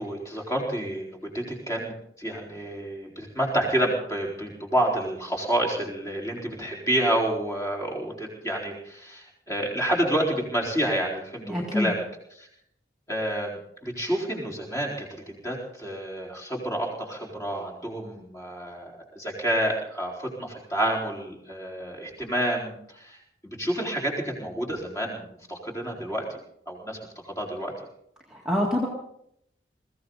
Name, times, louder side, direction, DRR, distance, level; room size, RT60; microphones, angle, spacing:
voice 1, 0.0-12.0 12.4-12.5 13.1-26.4 26.7-27.0 27.2-27.7, right 1 dB, 15° left, -1 dB, 4.3 m, -29 dB
voice 2, 11.5-11.9 28.3-28.9, left 1 dB, 5° right, -4 dB, 2.0 m, -25 dB
21.5 x 16.0 x 4.0 m, 0.72 s
head